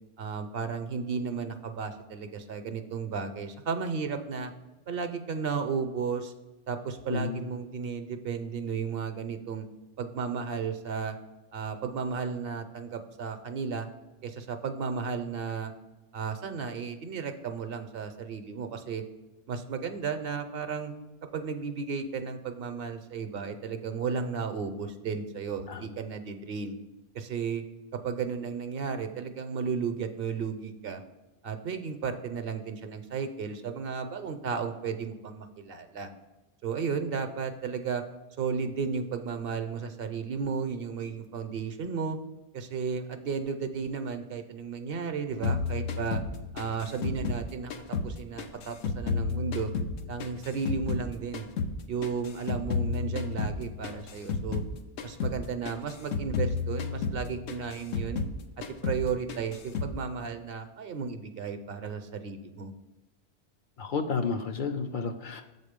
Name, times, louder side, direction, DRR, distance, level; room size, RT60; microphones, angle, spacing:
voice 1, 0.2-4.5 4.9-6.3 6.7-9.7 10.0-11.2 11.5-13.9 14.2-15.7 16.1-19.0 19.5-20.9 21.3-26.7 27.1-27.6 28.0-31.0 31.4-36.1 36.6-38.0 38.4-42.2 42.5-46.2 46.5-47.7 48.0-49.7 50.1-51.5 51.9-54.6 55.0-58.2 58.8-62.7, right 5 dB, 65° right, 8 dB, 0.8 m, -34 dB
voice 2, 7.1-7.4 25.7-25.8 63.8-65.4, left 5 dB, 60° left, 5 dB, 0.6 m, -31 dB
sound 1, 45.4-48.1 48.4-51.1 51.3-54.7 55.0-55.4 55.6-58.4 58.6-59.0 59.3-59.9, left 5 dB, 85° left, 1.0 m, -32 dB
7.3 x 4.2 x 5.1 m, 1.1 s
omnidirectional pair, 1.1 m